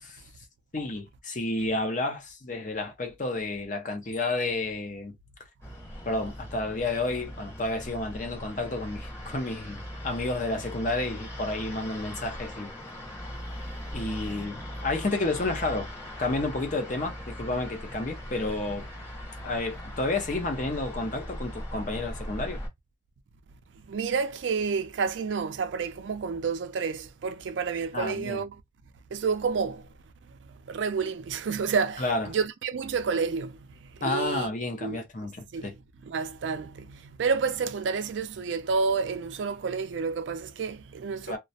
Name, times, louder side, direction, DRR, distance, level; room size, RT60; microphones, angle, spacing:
voice 1, 0.7-5.1 6.1-12.7 13.9-15.9 16.2-18.9 19.4-22.6 27.9-28.4 32.0-32.3 34.0-35.7 41.3-41.4, left 2 dB, 40° left, 0.7 m, -31 dB
sound 1, 5.6-22.7, equal, 15° left, 0.9 m, -40 dB
voice 2, 23.9-28.6 29.1-29.9 30.4-34.5 34.8-35.0 35.5-41.4, right 5 dB, 80° right, 0.4 m, -30 dB
2.3 x 2.0 x 2.6 m
head